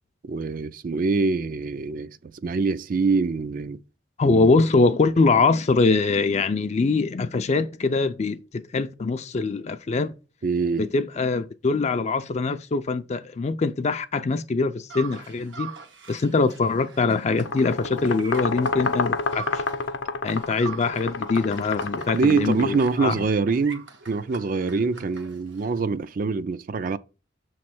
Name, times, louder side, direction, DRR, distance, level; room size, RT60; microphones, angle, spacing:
voice 1, 0.2-3.8 4.3-4.5 10.4-10.9 22.1-27.0, right 4 dB, 50° right, 0.4 m, -25 dB
voice 2, 4.2-10.1 10.8-15.7 16.1-19.6 20.2-23.1, left 3 dB, 35° left, 0.4 m, -23 dB
sound 1, 14.9-20.0 20.3-25.8, right 6 dB, 80° right, 1.2 m, -43 dB
sound 2, 17.3-23.0, left 4 dB, 85° left, 0.6 m, -29 dB
6.9 x 3.2 x 5.9 m
head